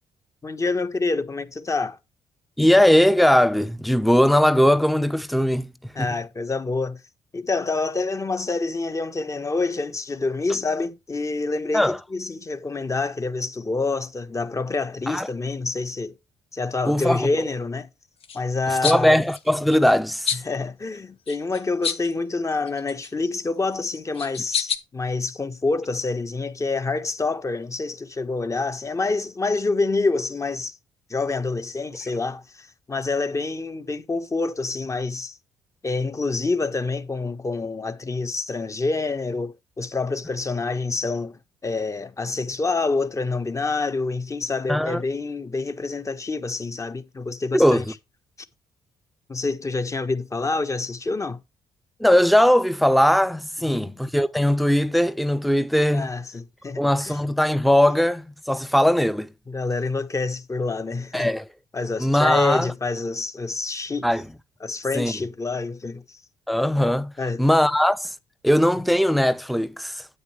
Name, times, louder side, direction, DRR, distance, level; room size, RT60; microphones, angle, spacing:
voice 1, 0.4-2.0 5.9-7.0 7.3-16.2 16.5-17.9 18.3-19.2 20.3-30.8 31.1-35.4 35.8-47.8 49.3-51.4 53.6-53.9 55.9-57.2 59.5-61.3 61.7-64.1 64.6-66.2 67.2-67.4, left 3 dB, 30° left, 1.4 m, -27 dB
voice 2, 2.6-5.7 6.0-6.1 11.7-12.0 15.1-15.3 16.9-17.3 18.8-20.3 44.7-45.0 47.5-47.8 52.0-56.1 56.8-59.3 61.1-61.4 62.0-62.7 64.0-64.2 64.9-65.1 66.5-67.1 67.4-68.1 68.4-70.1, equal, ahead, 0.8 m, -19 dB
sound 1, 18.2-18.4 18.8-19.0 19.3-19.9 20.2-20.5 21.3-22.1 22.5-23.3 23.9-24.8, left 7 dB, 60° left, 1.3 m, -28 dB
9.7 x 8.7 x 3.3 m
supercardioid pair, 55°, 11 cm